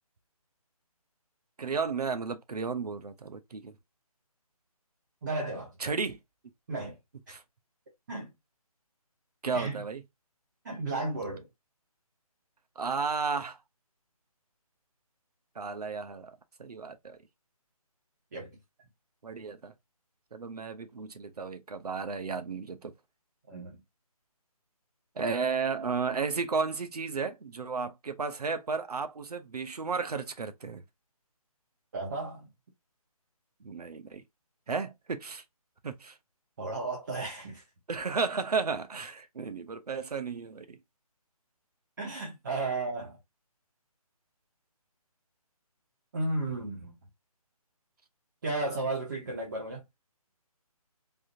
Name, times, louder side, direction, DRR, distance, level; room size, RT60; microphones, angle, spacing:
voice 1, 1.6-3.8 5.8-6.2 7.3-7.4 9.4-10.0 12.8-13.6 15.6-16.3 16.6-17.2 19.2-19.7 20.3-22.9 25.2-30.8 33.6-34.2 34.7-35.4 35.8-36.2 37.9-40.8, right 5 dB, 85° right, 0.8 m, -33 dB
voice 2, 5.2-5.7 6.7-7.0 7.3-7.4 8.1-8.3 9.5-9.8 10.6-11.5 18.3-18.5 23.5-23.8 31.9-32.5 36.6-37.6 42.0-43.2 46.1-46.9 48.4-49.8, right 2 dB, 30° right, 0.9 m, -34 dB
3.5 x 2.7 x 2.4 m
hypercardioid pair, 165°, 19 cm